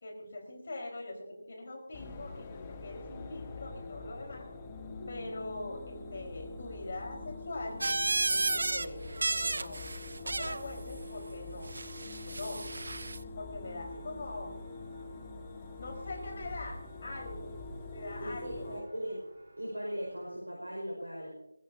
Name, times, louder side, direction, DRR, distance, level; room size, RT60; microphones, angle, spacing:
voice 1, 0.0-4.5 5.1-7.8 8.3-9.8 10.2-11.7 12.1-12.6 13.4-14.5 15.8-17.5 17.9-18.9, left 2 dB, 40° left, 2 dB, 4.5 m, -42 dB
sound 1, 1.9-18.8, left 3 dB, 20° left, 1.2 m, -45 dB
voice 2, 4.9-5.3 12.2-12.4 18.2-19.2 19.6-21.3, equal, 80° right, -2 dB, 5.4 m, -39 dB
sound 2, 7.8-8.9 9.1-10.6 11.7-13.2, right 2 dB, 55° right, 0.6 m, -32 dB
Walk footsteps, 13.6-20.3, right 1 dB, 35° right, 6.7 m, -56 dB
22.5 x 16.5 x 2.8 m, 0.88 s
figure-of-eight pair, 160°, 0 cm